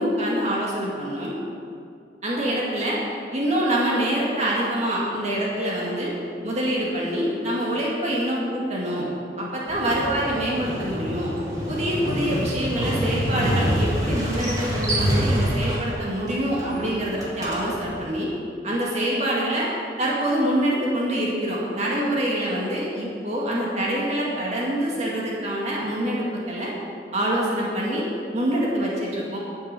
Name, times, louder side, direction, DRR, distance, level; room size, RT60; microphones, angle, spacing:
voice 1, 0.0-1.3 2.2-3.0 3.3-6.1 6.4-9.1 9.4-11.3 11.7-18.3 18.6-19.7 20.0-26.7 27.1-28.1 28.3-29.4, right 1 dB, 40° right, -5 dB, 2.1 m, -25 dB
Motorcycle, 9.7-18.0, equal, 20° right, 2.3 m, -27 dB
10.0 x 8.6 x 6.7 m, 2.4 s
head